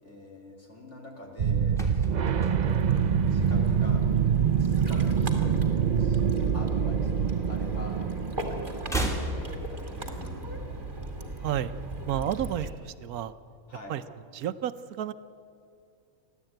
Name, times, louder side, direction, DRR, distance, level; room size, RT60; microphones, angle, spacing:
voice 1, 0.0-2.8 3.3-4.0 4.6-6.2 6.5-8.0 8.5-10.4 13.7-14.0, left 1 dB, 50° left, 0 dB, 3.8 m, -46 dB
sound 1, 1.4-9.1, right 7 dB, 55° right, 0.5 m, -25 dB
sound 2, 1.7-4.0 4.3-4.6 4.9-6.4 6.6-8.0 8.3-10.4 10.6-10.7, right 1 dB, ahead, 2.9 m, -36 dB
Ocean, 2.6-12.7, right 2 dB, 35° right, 2.7 m, -37 dB
voice 2, 12.1-13.3 13.9-14.0 14.3-15.1, right 11 dB, 75° right, 12 dB, 1.2 m, -31 dB
29.5 x 12.0 x 9.1 m, 2.5 s
omnidirectional pair, 1.6 m